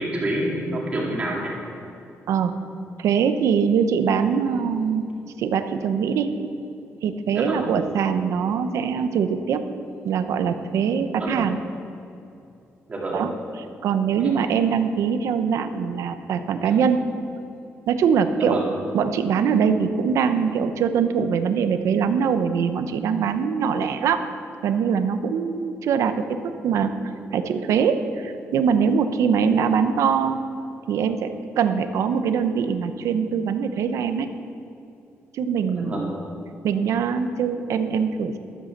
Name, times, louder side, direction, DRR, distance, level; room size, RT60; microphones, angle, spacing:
voice 1, 0.0-1.5 7.3-7.6 11.2-11.3 12.9-13.2 14.2-14.3 18.4-18.7 35.7-36.2, right 1 dB, 25° right, -4 dB, 2.4 m, -27 dB
voice 2, 3.0-5.0 5.4-6.4 7.0-9.6 10.0-11.6 13.1-13.3 13.8-17.0 17.9-18.6 18.9-24.2 24.6-26.4 26.6-26.9 27.3-30.4 30.9-34.3 35.3-36.1 36.6-38.4, right 6 dB, 90° right, 8 dB, 0.8 m, -22 dB
12.5 x 8.3 x 7.3 m, 2.7 s
wide cardioid pair, 170°, 5 cm